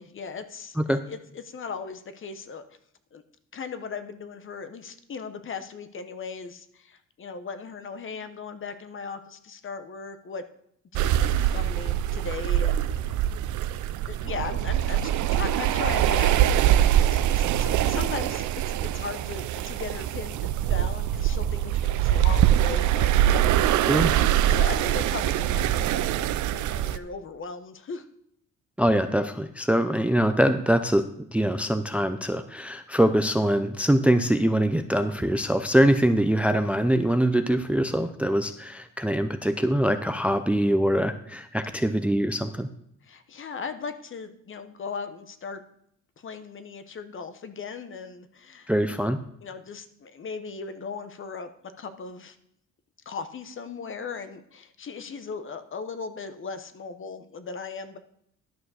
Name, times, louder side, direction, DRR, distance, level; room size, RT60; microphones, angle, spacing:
voice 1, 0.0-2.6 3.1-3.2 3.5-10.4 10.9-13.2 14.1-23.1 24.4-28.1 43.0-45.6 46.2-49.0 49.4-51.5 51.8-52.4 53.1-58.0, left 5 dB, 45° left, 10 dB, 0.9 m, -38 dB
sound 1, 10.9-27.0, right 12 dB, 75° right, 0.5 m, -23 dB
voice 2, 28.8-42.7 48.7-49.2, right 1 dB, 5° right, 10 dB, 0.5 m, -23 dB
11.5 x 4.8 x 6.4 m, 0.71 s
cardioid pair, 90°, 30 cm